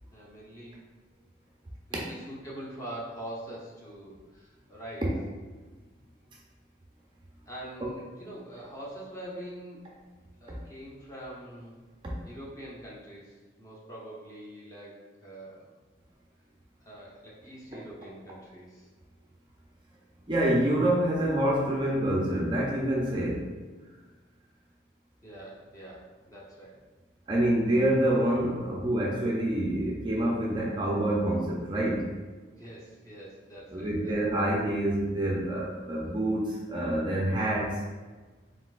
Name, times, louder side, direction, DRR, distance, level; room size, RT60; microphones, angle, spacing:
voice 1, 0.1-0.8 1.9-5.1 7.5-9.9 10.4-11.8 12.2-15.8 16.8-18.9 25.2-26.7 32.6-34.4, right 1 dB, 15° left, -5 dB, 0.8 m, -44 dB
voice 2, 20.3-23.5 27.3-32.1 33.7-37.8, right 1 dB, 25° right, -3 dB, 0.5 m, -27 dB
4.2 x 3.6 x 2.4 m, 1.3 s
head